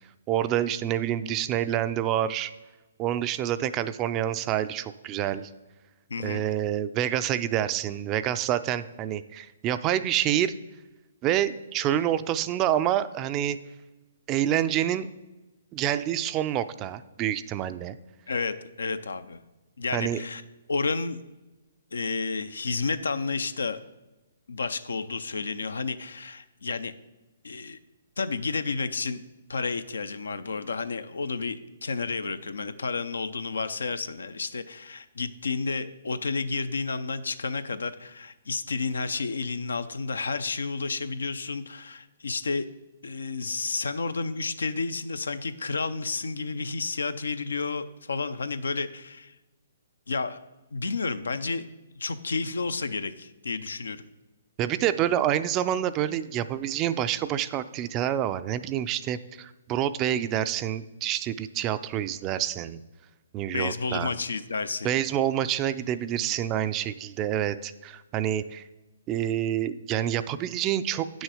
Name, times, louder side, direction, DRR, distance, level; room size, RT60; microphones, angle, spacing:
voice 1, 0.3-2.5 3.0-5.5 6.2-10.5 11.2-13.6 14.3-15.1 15.7-18.0 19.9-20.2 54.6-62.8 63.3-64.1 64.8-68.6 69.1-71.2, right 11 dB, 25° right, 13 dB, 0.4 m, -27 dB
voice 2, 6.1-6.4 18.3-19.4 19.8-20.4 20.7-21.2 21.9-23.8 24.5-26.9 27.4-27.8 28.2-29.2 29.5-42.7 43.0-49.3 50.1-50.4 50.7-51.6 52.0-54.0 63.5-64.9, left 4 dB, 85° left, 12 dB, 0.6 m, -31 dB
8.8 x 6.3 x 4.9 m, 1.1 s
hypercardioid pair, 140°, 0 cm